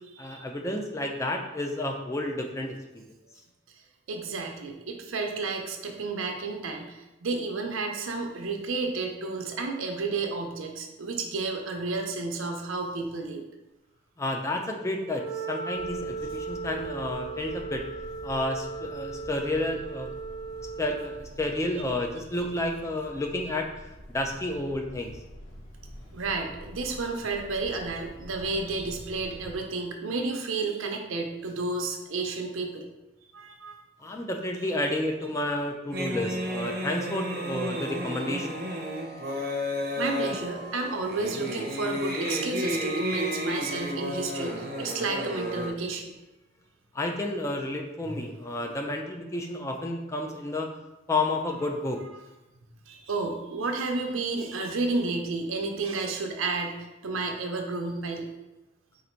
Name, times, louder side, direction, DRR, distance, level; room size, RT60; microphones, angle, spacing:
voice 1, 0.2-3.0 14.2-17.8 18.2-20.1 20.8-23.7 24.1-25.2 34.0-38.6 46.9-50.7 51.1-52.0, left 1 dB, 15° left, 2 dB, 0.3 m, -31 dB
voice 2, 4.1-13.4 16.7-16.8 26.1-32.9 33.3-33.8 37.7-37.8 40.0-46.2 48.0-48.2 48.6-48.7 52.9-58.3, right 3 dB, 85° right, 3 dB, 0.6 m, -31 dB
Wind instrument woodwind instrument, 15.0-21.3, right 4 dB, 45° left, 1.0 m, -37 dB
sound 1, 15.7-29.6, equal, 75° left, 0.9 m, -47 dB
sound 2, 35.9-45.7, equal, 45° right, 0.6 m, -32 dB
3.9 x 2.5 x 4.4 m, 1.0 s
head